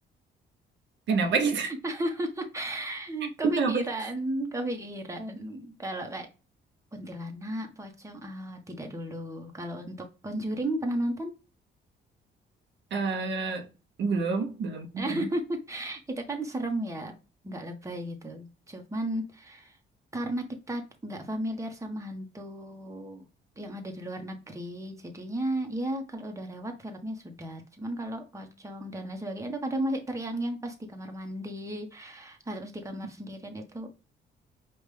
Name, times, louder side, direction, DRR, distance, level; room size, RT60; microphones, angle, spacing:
voice 1, 1.1-1.7 3.4-3.8 12.9-13.7 14.0-15.3, right 4 dB, 65° right, 0.9 m, -27 dB
voice 2, 1.6-6.3 6.9-10.0 10.2-11.3 15.0-17.1 17.4-19.8 20.1-23.3 23.6-33.9, right 1 dB, 15° right, 1.1 m, -34 dB
5.2 x 2.5 x 3.4 m
cardioid pair, 90°, 20 cm